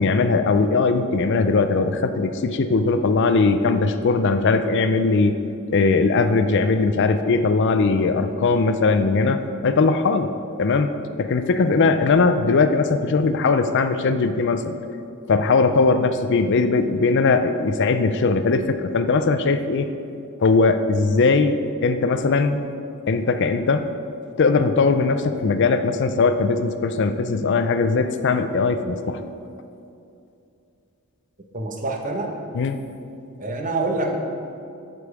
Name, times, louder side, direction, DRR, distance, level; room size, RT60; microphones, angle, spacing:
voice 1, 0.0-5.4 5.7-10.3 10.6-14.7 15.3-19.9 20.4-22.6 23.1-23.9 24.4-29.2 32.5-32.8, left 4 dB, 55° left, 9 dB, 0.4 m, -20 dB
voice 2, 31.5-32.3 33.4-34.2, right 2 dB, 35° right, 2 dB, 1.0 m, -26 dB
12.5 x 5.3 x 4.8 m, 2.6 s
head